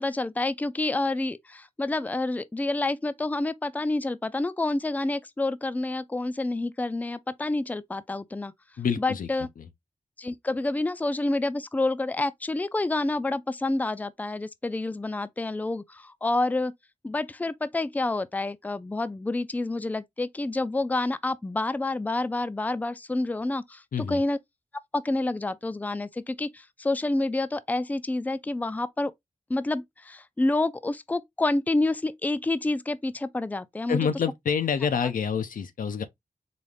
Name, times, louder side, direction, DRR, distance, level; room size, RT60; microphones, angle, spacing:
voice 1, 0.0-8.5 9.0-9.5 10.2-16.7 17.0-24.4 24.9-29.1 29.5-34.1, left 2 dB, 10° left, 0.4 m, -28 dB
voice 2, 8.8-9.3 9.6-9.7 23.9-24.2 33.9-36.0, left 6 dB, 90° left, 0.6 m, -27 dB
4.0 x 2.3 x 3.2 m
cardioid pair, 60°, 14 cm